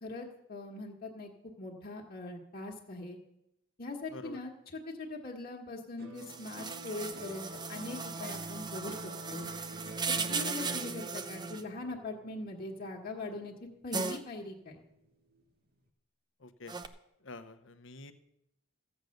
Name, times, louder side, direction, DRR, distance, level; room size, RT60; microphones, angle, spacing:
voice 1, 0.0-1.3 1.6-3.2 3.8-9.0 9.3-9.5 10.1-13.5 13.8-14.8, left 2 dB, 40° left, 0 dB, 1.5 m, -41 dB
voice 2, 4.1-4.4 10.1-10.4 16.4-16.8 17.2-18.1, left 2 dB, 55° left, 10 dB, 0.9 m, -48 dB
sound 1, 6.0-14.4 14.8-15.4, right 1 dB, 45° right, 1.4 m, -51 dB
sound 2, 6.2-11.6 13.9-14.2 16.7-16.9, right 4 dB, 20° right, 0.6 m, -37 dB
14.5 x 8.2 x 6.6 m, 0.84 s
head